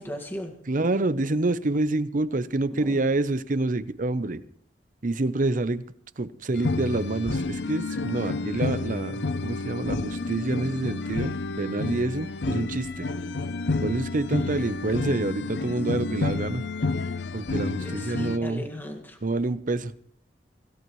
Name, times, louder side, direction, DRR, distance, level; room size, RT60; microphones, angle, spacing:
voice 1, 0.0-0.5 2.8-3.0 17.8-19.2, equal, 10° left, 1.9 m, -37 dB
voice 2, 0.7-4.4 5.0-5.9 6.2-13.1 13.8-16.7 17.3-18.7 19.2-19.9, right 2 dB, 50° right, 0.8 m, -27 dB
sound 1, 6.5-18.4, left 3 dB, 70° left, 0.6 m, -30 dB
25.5 x 16.5 x 3.2 m
head